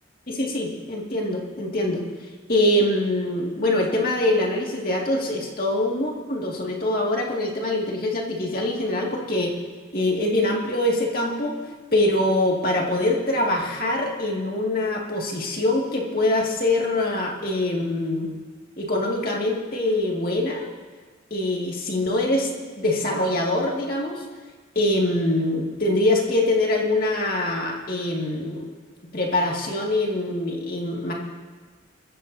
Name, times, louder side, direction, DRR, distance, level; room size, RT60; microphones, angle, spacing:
voice 1, 0.3-2.0 2.5-9.5 9.9-11.6 11.9-18.3 18.8-20.7 21.3-22.5 22.8-24.2 24.8-28.7 29.1-31.1, left 1 dB, 50° left, -2 dB, 2.3 m, -24 dB
24.5 x 14.5 x 2.8 m, 1.4 s
head